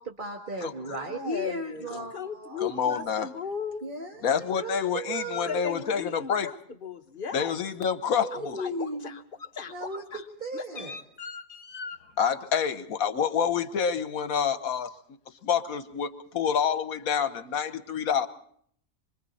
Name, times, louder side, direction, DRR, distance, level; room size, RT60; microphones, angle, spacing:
voice 1, 0.0-2.9 3.8-5.7 8.2-9.2 9.7-11.0, right 1 dB, 35° right, 0 dB, 1.9 m, -36 dB
voice 2, 0.9-1.9 2.1-3.8 5.5-7.5 8.3-10.2 10.5-12.0, left 7 dB, 40° left, 6 dB, 1.2 m, -37 dB
voice 3, 2.6-3.3 4.2-6.5 7.3-8.6 12.2-14.9 15.4-18.3, left 7 dB, 70° left, 11 dB, 1.5 m, -27 dB
27.0 x 24.0 x 4.2 m, 0.62 s
omnidirectional pair, 1.5 m